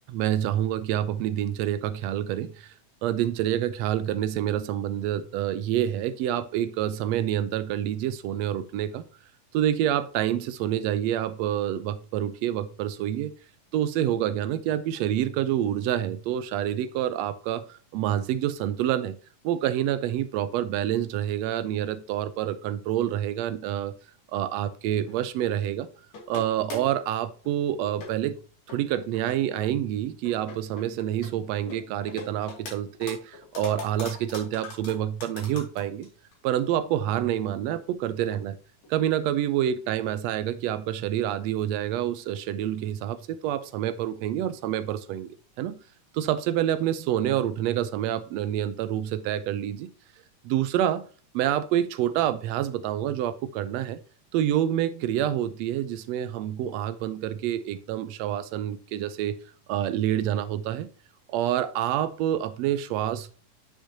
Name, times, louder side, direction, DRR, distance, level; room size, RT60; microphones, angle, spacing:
voice 1, 0.1-2.7 3.0-9.0 9.5-13.3 13.7-19.2 19.4-23.9 24.3-25.9 26.3-28.4 28.7-36.1 36.4-38.6 38.9-45.8 46.1-49.9 50.4-51.1 51.3-54.0 54.3-59.4 59.7-60.9 61.3-63.3, right 11 dB, 80° right, 13 dB, 1.6 m, -27 dB
sound 1, 25.1-25.6 26.1-27.0 27.4-27.5 28.0-28.4 28.7-28.8 29.1-29.7 30.3-31.3 31.7-32.7 33.0-36.1 36.3-36.4 36.9-37.0 37.3-37.4 38.3-38.4 38.8-38.9, left 3 dB, 65° left, 3.6 m, -40 dB
8.2 x 6.4 x 2.8 m, 0.39 s
omnidirectional pair, 3.4 m